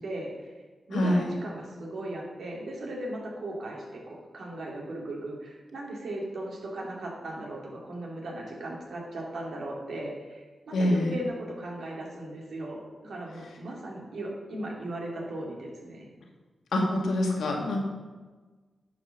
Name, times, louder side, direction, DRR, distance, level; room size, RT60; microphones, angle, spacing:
voice 1, 0.0-0.5 0.9-16.1, right 1 dB, 75° right, -2 dB, 2.9 m, -37 dB
voice 2, 0.9-1.2 10.7-11.1 16.7-17.8, left 1 dB, 85° left, 0 dB, 2.0 m, -25 dB
10.5 x 5.3 x 6.7 m, 1.3 s
cardioid pair, 65°, 0 cm